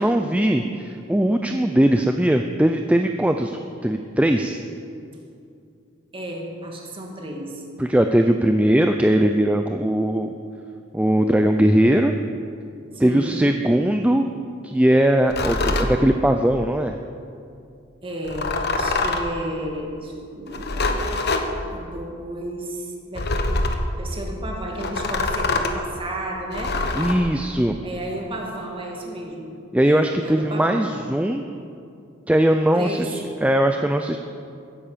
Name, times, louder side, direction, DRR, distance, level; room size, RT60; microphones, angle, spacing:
voice 1, 0.0-4.6 7.8-10.3 10.9-12.1 13.0-14.3 14.6-16.9 27.0-27.8 29.7-31.4 32.3-34.2, right 1 dB, 5° right, 5 dB, 0.5 m, -20 dB
voice 2, 6.1-7.6 12.9-13.4 18.0-21.3 21.7-23.2 24.0-27.1 27.8-31.0 32.7-33.3, right 1 dB, 25° right, 0 dB, 2.4 m, -33 dB
sound 1, 15.3-15.9 18.2-19.3 20.5-21.5 23.2-23.9 24.8-25.8 26.5-27.2, left 2 dB, 50° left, 1.2 m, -24 dB
16.0 x 10.5 x 6.8 m, 2.5 s
head